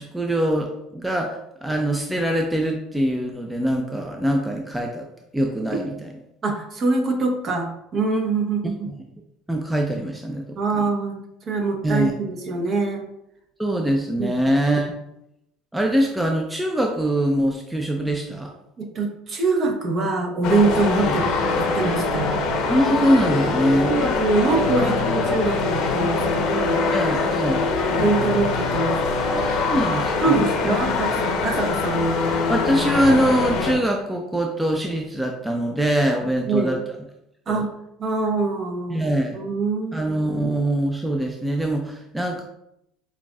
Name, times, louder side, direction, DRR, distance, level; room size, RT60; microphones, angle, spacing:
voice 1, 0.0-5.0 5.3-5.9 9.5-10.6 11.8-12.1 13.6-14.9 15.7-18.5 21.0-21.1 22.7-23.9 24.8-24.9 26.9-27.6 29.3-30.8 32.5-36.8 37.5-37.6 38.9-39.4 39.9-42.4, right 1 dB, 10° right, 2 dB, 0.5 m, -23 dB
voice 2, 6.4-8.9 10.6-13.1 14.2-14.4 18.8-22.4 23.8-26.8 27.4-27.5 27.9-29.0 30.2-32.2 36.5-36.8 37.5-37.7 38.0-39.1 39.3-40.1, right 3 dB, 45° right, 3 dB, 0.9 m, -24 dB
sound 1, 20.4-33.8, left 3 dB, 65° left, 0.8 m, -23 dB
5.8 x 2.5 x 2.3 m, 0.80 s
hypercardioid pair, 75°, 0 cm